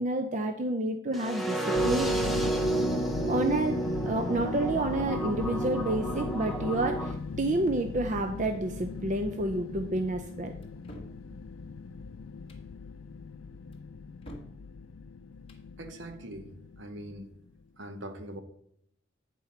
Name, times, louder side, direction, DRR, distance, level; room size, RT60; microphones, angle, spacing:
voice 1, 0.0-2.3 3.3-10.5, right 2 dB, 40° right, 6 dB, 0.5 m, -29 dB
sound 1, 1.1-7.1, right 2 dB, ahead, 0.8 m, -31 dB
sound 2, 1.8-17.6, left 5 dB, 90° left, 0.4 m, -39 dB
sound 3, 10.6-11.2 12.3-12.7 13.7-14.6 15.3-15.7, equal, 30° left, 1.1 m, -48 dB
voice 2, 15.8-17.3 17.8-18.4, right 1 dB, 65° right, 8 dB, 0.9 m, -42 dB
8.8 x 4.4 x 5.8 m, 0.72 s
head